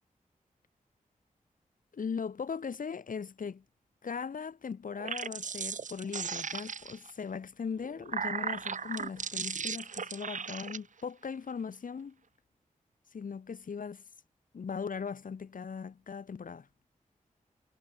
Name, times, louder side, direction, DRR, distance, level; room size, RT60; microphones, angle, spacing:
voice 1, 1.9-3.6 4.0-12.2 13.1-14.0 14.5-16.7, left 6 dB, 70° left, 5.1 m, -39 dB
sound 1, 4.9-7.1 7.8-10.8, right 6 dB, 60° right, 1.5 m, -37 dB
wide cardioid pair, 110°, 14 cm